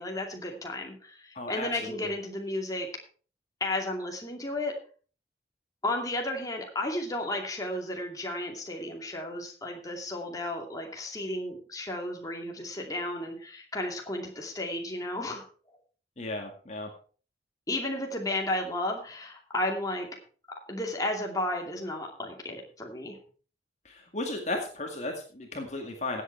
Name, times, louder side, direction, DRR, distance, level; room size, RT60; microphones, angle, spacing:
voice 1, 0.0-2.9 3.6-4.7 5.8-15.4 17.7-20.1 20.7-23.2, left 1 dB, 20° left, 1 dB, 2.5 m, -33 dB
voice 2, 1.4-2.1 16.2-16.9 23.9-26.2, left 2 dB, 40° left, 2 dB, 2.1 m, -35 dB
16.0 x 8.2 x 4.6 m, 0.41 s
head